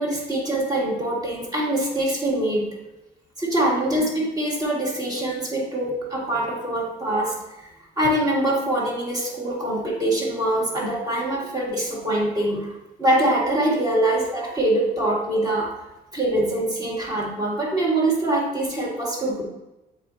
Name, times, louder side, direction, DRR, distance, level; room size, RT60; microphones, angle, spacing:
voice 1, 0.0-2.7 3.4-7.7 8.0-15.7 16.1-19.4, right 1 dB, 20° right, -3 dB, 2.0 m, -24 dB
8.1 x 4.1 x 2.8 m, 0.99 s
cardioid pair, 110°, 17 cm